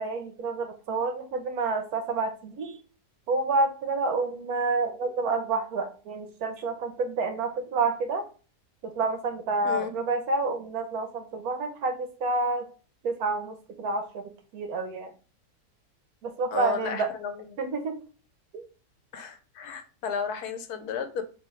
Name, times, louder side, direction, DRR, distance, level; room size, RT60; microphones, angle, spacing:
voice 1, 0.0-2.8 3.3-8.2 8.8-12.7 13.0-15.1 16.2-17.1 17.6-18.0 18.5-18.7, right 3 dB, 70° right, 7 dB, 1.1 m, -29 dB
voice 2, 9.6-10.0 16.5-17.6 19.1-21.2, left 6 dB, 75° left, 8 dB, 1.2 m, -33 dB
3.1 x 3.0 x 4.6 m, 0.37 s
omnidirectional pair, 1.7 m